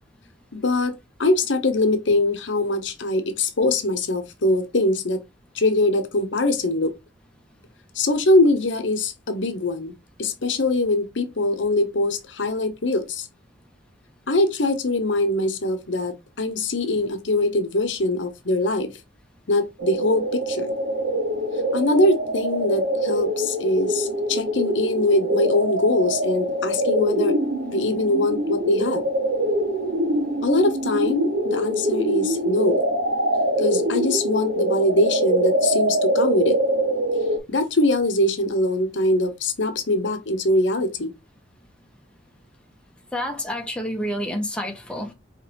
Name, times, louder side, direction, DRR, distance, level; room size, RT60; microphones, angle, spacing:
voice 1, 0.5-5.2 5.5-6.9 7.9-9.9 10.2-13.3 14.3-18.9 19.5-20.7 21.7-27.4 27.7-29.0 30.4-32.9 33.6-36.6 37.5-41.1, left 2 dB, 75° left, 0.9 m, -22 dB
sound 1, 19.8-37.4, right 1 dB, 60° right, 1.0 m, -24 dB
voice 2, 43.1-45.1, equal, 5° left, 0.9 m, -28 dB
5.0 x 3.2 x 3.0 m
head